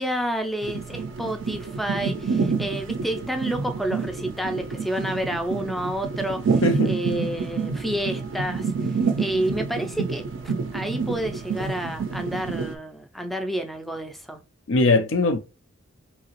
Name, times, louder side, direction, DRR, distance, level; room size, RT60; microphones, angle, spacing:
voice 1, 0.0-8.7 9.2-14.4, right 1 dB, ahead, 0.3 m, -29 dB
sound 1, 0.6-12.7, right 5 dB, 65° right, 0.4 m, -28 dB
voice 2, 6.6-6.9 14.7-15.4, left 2 dB, 80° left, 0.5 m, -20 dB
2.8 x 2.8 x 2.9 m
head